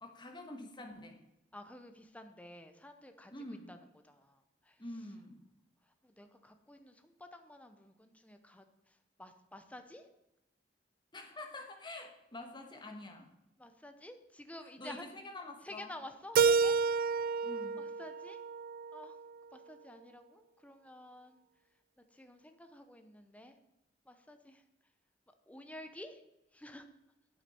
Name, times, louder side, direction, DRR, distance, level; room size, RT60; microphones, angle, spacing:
voice 1, 0.0-1.2 3.3-3.7 4.8-5.4 11.1-13.3 14.6-15.9 17.4-17.8, left 1 dB, 25° left, 4 dB, 1.4 m, -47 dB
voice 2, 1.5-3.8 4.0-4.4 4.7-4.8 6.0-8.6 9.2-10.0 13.6-15.0 15.6-17.2 17.8-18.4 18.9-19.1 19.5-21.4 22.1-23.5 24.1-24.6 25.5-26.2 26.5-26.9, left 1 dB, 10° left, 7 dB, 0.7 m, -51 dB
Keyboard (musical), 16.4-19.3, right 5 dB, 55° right, 0.3 m, -30 dB
9.3 x 8.7 x 4.4 m, 0.90 s
head